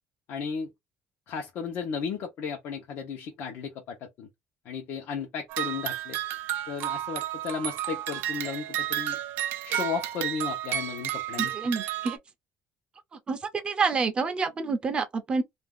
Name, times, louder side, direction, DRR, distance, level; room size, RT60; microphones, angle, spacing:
voice 1, 0.3-0.7 1.3-4.3 4.6-6.2 6.7-9.2 9.6-11.6, left 6 dB, 65° left, 0.8 m, -34 dB
sound 1, 5.5-12.2, right 12 dB, 75° right, 0.5 m, -32 dB
voice 2, 11.4-12.2 13.3-13.4 13.6-15.4, right 4 dB, 25° right, 0.6 m, -28 dB
2.6 x 2.4 x 3.6 m
cardioid pair, 150°, 4 cm